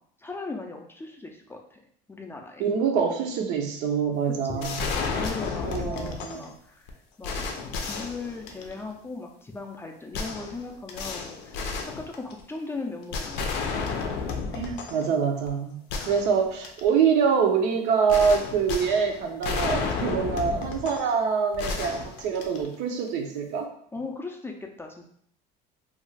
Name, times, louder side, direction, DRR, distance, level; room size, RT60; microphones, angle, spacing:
voice 1, 0.2-1.8 2.1-2.7 4.4-6.9 7.2-11.6 12.0-13.9 23.9-25.0, left 3 dB, 15° left, 2 dB, 0.3 m, -38 dB
voice 2, 2.6-4.8 5.6-6.5 14.5-15.8 16.1-23.7, right 6 dB, 75° right, 3 dB, 0.6 m, -25 dB
sound 1, 4.6-6.5 6.9-7.0 7.2-8.9 10.1-12.6 13.1-15.1 15.5-15.6 15.9-16.9 18.1-21.2 21.5-22.9, left 4 dB, 80° left, 0.5 m, -32 dB
2.5 x 2.3 x 3.2 m, 0.65 s
cardioid pair, 110°, 18 cm